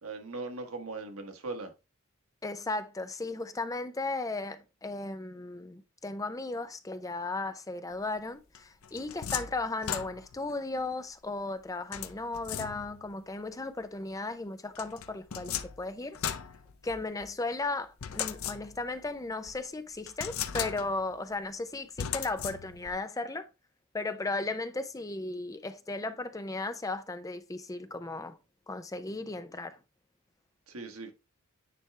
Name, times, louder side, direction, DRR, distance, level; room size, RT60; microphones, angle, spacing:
voice 1, 0.0-1.7 30.7-31.1, right 3 dB, 90° right, 1.3 m, -39 dB
voice 2, 2.4-16.2 16.8-23.5 23.9-28.4 28.7-29.8, left 3 dB, 15° left, 0.5 m, -36 dB
sound 1, 8.6-10.5 11.9-13.1 14.8-17.3 18.0-19.0 19.5-19.6 20.1-21.1 22.0-23.0, left 9 dB, 80° left, 0.6 m, -37 dB
9.2 x 3.4 x 3.3 m
head